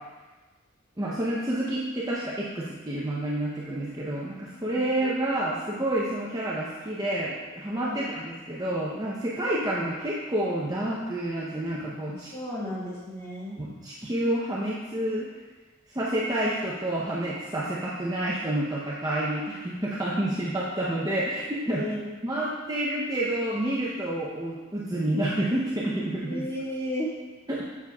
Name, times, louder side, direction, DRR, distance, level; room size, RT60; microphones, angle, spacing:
voice 1, 1.0-12.3 13.6-15.3 15.9-21.8 22.2-26.4 27.5-27.6, right 1 dB, 15° right, -6 dB, 0.6 m, -29 dB
voice 2, 12.1-13.6 21.7-22.0 26.3-27.1, equal, 15° left, -7 dB, 1.7 m, -33 dB
7.3 x 7.0 x 2.3 m, 1.3 s
head